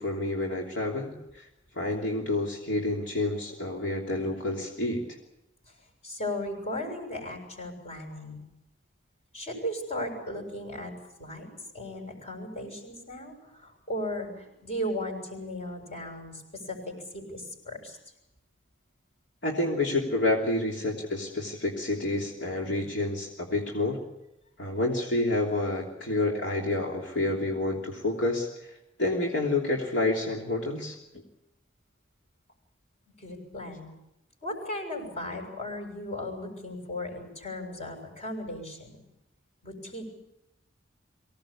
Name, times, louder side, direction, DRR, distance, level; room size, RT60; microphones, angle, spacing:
voice 1, 0.0-1.5 1.7-5.0 19.4-24.0 24.6-28.7 29.0-31.0, left 2 dB, 65° left, -2 dB, 3.2 m, -29 dB
voice 2, 6.0-8.4 9.3-11.5 11.7-18.0 33.2-33.9 34.4-39.0 39.6-40.1, left 1 dB, 35° left, 4 dB, 6.6 m, -36 dB
24.5 x 17.5 x 8.7 m, 0.87 s
head